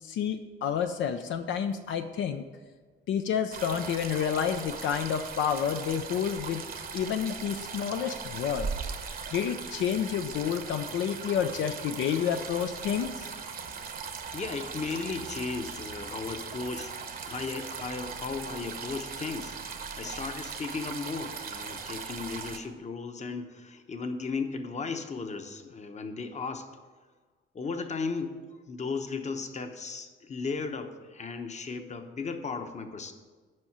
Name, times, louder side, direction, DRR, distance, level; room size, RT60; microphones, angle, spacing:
voice 1, 0.0-2.5 3.1-6.6 6.9-8.7 9.3-13.3, left 8 dB, 75° left, 7 dB, 0.5 m, -29 dB
sound 1, 3.5-22.6, right 5 dB, 45° right, 0.9 m, -39 dB
voice 2, 13.8-19.6 19.8-26.7 27.5-28.4 28.7-33.1, left 4 dB, 35° left, 7 dB, 0.9 m, -36 dB
7.7 x 5.5 x 7.3 m, 1.4 s
cardioid pair, 90°, 20 cm